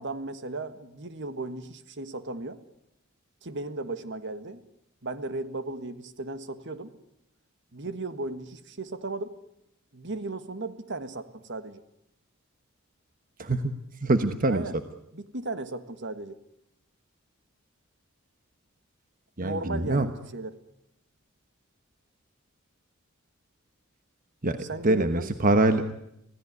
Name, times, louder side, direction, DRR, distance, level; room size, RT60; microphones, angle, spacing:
voice 1, 0.0-2.6 3.4-4.6 5.0-6.9 7.7-9.4 9.9-11.8 14.4-14.7 15.1-16.4 19.4-20.6 24.6-25.3, right 2 dB, 60° right, 11 dB, 1.7 m, -36 dB
voice 2, 13.4-13.7 14.0-14.7 19.4-20.1 24.4-26.0, right 2 dB, 40° right, 9 dB, 1.2 m, -24 dB
26.0 x 17.0 x 9.6 m, 0.80 s
head